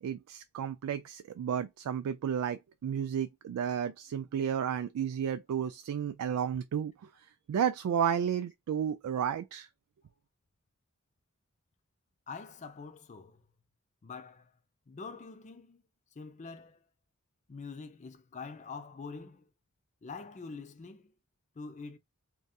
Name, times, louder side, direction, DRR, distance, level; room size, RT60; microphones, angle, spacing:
voice 1, 0.0-6.9 7.5-9.7, right 8 dB, 90° right, 0.3 m, -32 dB
voice 2, 12.3-13.4 14.0-14.5 14.9-15.8 16.2-16.8 17.5-19.5 20.0-21.1 21.6-22.0, left 4 dB, 35° left, 0.4 m, -45 dB
2.7 x 2.2 x 2.3 m
head